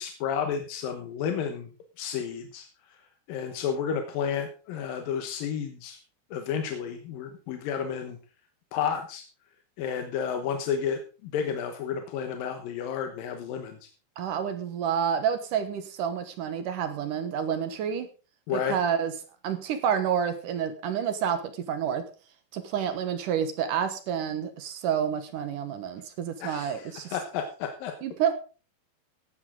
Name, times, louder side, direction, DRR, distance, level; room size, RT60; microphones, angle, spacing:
voice 1, 0.0-1.7 2.0-2.7 3.3-6.0 6.3-8.2 8.7-9.2 9.8-13.8 18.5-18.8 26.4-27.9, left 7 dB, 65° left, 6 dB, 2.4 m, -31 dB
voice 2, 14.2-18.1 18.5-19.1 19.4-22.1 22.5-27.2 28.0-28.3, right 8 dB, 65° right, 9 dB, 2.2 m, -29 dB
16.0 x 11.0 x 3.8 m, 0.35 s
omnidirectional pair, 5.2 m